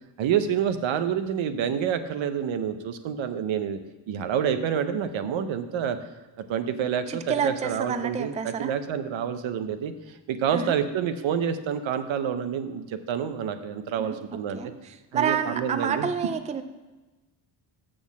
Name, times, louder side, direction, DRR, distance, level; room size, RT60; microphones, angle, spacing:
voice 1, 0.2-3.8 4.1-6.0 6.5-14.6 15.1-16.1, right 8 dB, 80° right, 10 dB, 0.8 m, -28 dB
voice 2, 7.1-8.7 10.5-10.7 14.0-16.6, right 7 dB, 15° right, 10 dB, 0.3 m, -29 dB
6.3 x 6.2 x 7.1 m, 1.2 s
cardioid pair, 125°, 46 cm